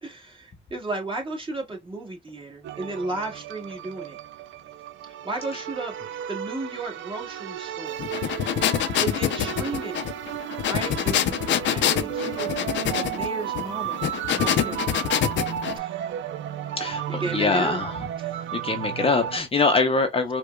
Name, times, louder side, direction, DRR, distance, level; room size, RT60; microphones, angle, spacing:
voice 1, 0.0-4.2 5.0-5.9 6.3-8.0 9.0-10.0 10.7-12.5 12.9-14.0 14.4-14.9 15.7-16.1 16.8-17.8 18.2-18.3, right 2 dB, 25° right, 1.7 m, -34 dB
sound 1, 2.6-19.4, right 10 dB, 75° right, 0.4 m, -33 dB
sound 2, 8.0-15.8, left 10 dB, 65° left, 0.5 m, -25 dB
voice 2, 16.8-18.0 18.6-20.4, left 3 dB, 30° left, 0.6 m, -23 dB
4.8 x 2.2 x 2.3 m
cardioid pair, 90°, 20 cm